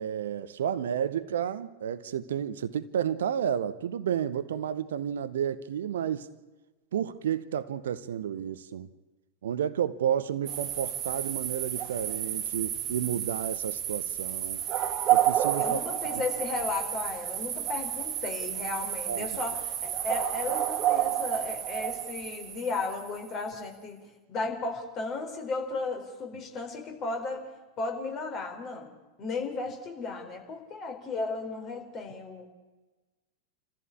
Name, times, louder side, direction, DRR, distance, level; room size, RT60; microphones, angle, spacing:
voice 1, 0.0-6.3 6.9-8.9 9.4-14.6 15.1-15.8 19.1-19.4, right 9 dB, 60° right, 0.9 m, -31 dB
sound 1, 10.5-23.3, right 11 dB, 35° right, 1.8 m, -30 dB
voice 2, 15.6-24.0 24.3-27.4 27.8-32.5, left 3 dB, 30° left, 4.5 m, -35 dB
28.5 x 15.0 x 8.7 m
figure-of-eight pair, 90°, 0 cm